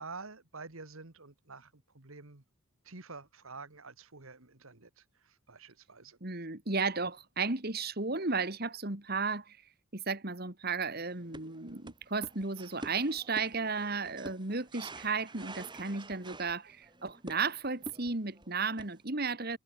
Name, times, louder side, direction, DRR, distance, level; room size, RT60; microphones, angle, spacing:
voice 1, 0.0-2.4 2.8-6.2, right 4 dB, 75° right, 2.0 m, -48 dB
voice 2, 6.2-9.6 9.9-19.6, right 4 dB, 45° right, 2.1 m, -34 dB
sound 1, 11.0-19.0, right 1 dB, 20° right, 7.8 m, -48 dB
head